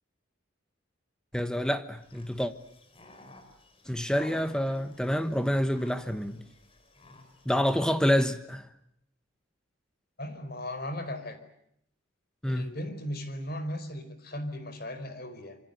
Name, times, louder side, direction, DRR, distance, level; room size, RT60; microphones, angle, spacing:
voice 1, 1.3-2.5 3.9-6.4 7.4-8.7 12.4-12.7, equal, 5° left, 1.2 m, -27 dB
sound 1, 2.0-7.5, left 2 dB, 25° left, 4.3 m, -54 dB
voice 2, 10.2-11.4 12.5-15.6, left 1 dB, 45° left, 4.8 m, -37 dB
27.0 x 25.0 x 8.1 m
head